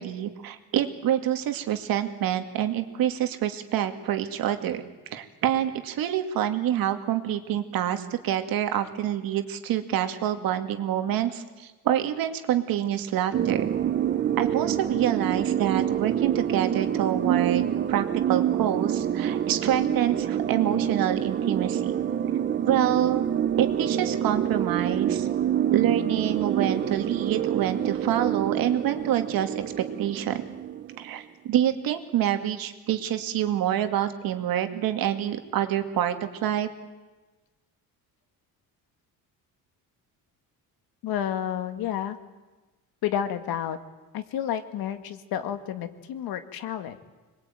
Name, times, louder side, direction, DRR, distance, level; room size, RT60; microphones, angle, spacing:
voice 1, 0.0-4.8 5.1-13.6 14.4-21.9 22.6-23.2 23.6-25.3 25.7-30.4 31.0-36.7, right 11 dB, 70° right, 7 dB, 2.3 m, -27 dB
sound 1, 13.3-31.1, right 9 dB, 30° right, 0.8 m, -27 dB
voice 2, 41.0-42.2 43.0-43.8 44.1-47.0, left 10 dB, 80° left, 9 dB, 2.1 m, -30 dB
26.0 x 21.5 x 9.2 m, 1.2 s
cardioid pair, 165°, 36 cm